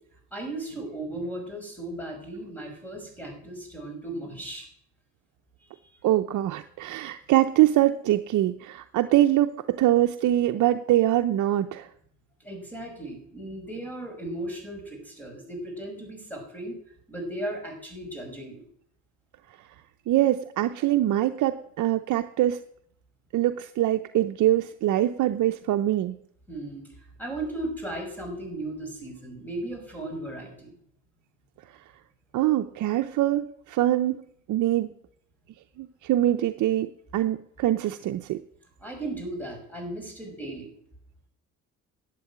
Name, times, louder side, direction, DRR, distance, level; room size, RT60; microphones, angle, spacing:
voice 1, 0.3-4.7 5.6-5.9 12.4-16.8 17.1-18.6 26.5-30.7 38.8-40.7, right 1 dB, 5° left, 2 dB, 5.9 m, -36 dB
voice 2, 6.0-11.9 20.1-22.6 23.3-26.2 32.3-34.2 34.5-34.9 35.8-38.4, right 13 dB, 70° right, 7 dB, 0.7 m, -23 dB
12.0 x 8.3 x 8.6 m, 0.67 s
cardioid pair, 115°, 31 cm